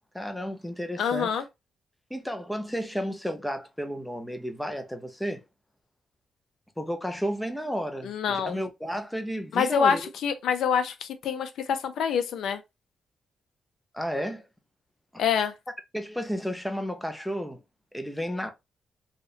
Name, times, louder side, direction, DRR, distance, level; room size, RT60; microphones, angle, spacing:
voice 1, 0.1-1.3 2.1-5.4 6.8-10.0 13.9-14.4 15.1-15.2 15.9-17.6 17.9-18.5, equal, 5° left, 0.4 m, -32 dB
voice 2, 1.0-1.4 8.0-8.6 9.5-12.6 15.2-15.5, left 7 dB, 80° left, 0.4 m, -26 dB
2.7 x 2.1 x 2.2 m
wide cardioid pair, 160°, 0 cm